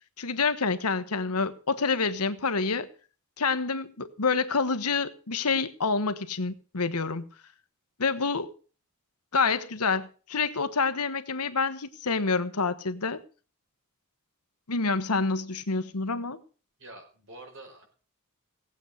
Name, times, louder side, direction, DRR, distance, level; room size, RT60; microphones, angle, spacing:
voice 1, 0.2-2.9 3.4-7.3 8.0-8.5 9.3-13.2 14.7-16.4, left 4 dB, 90° left, 1.2 m, -27 dB
voice 2, 16.8-17.9, right 2 dB, 60° right, 5.2 m, -46 dB
18.5 x 8.2 x 6.6 m
head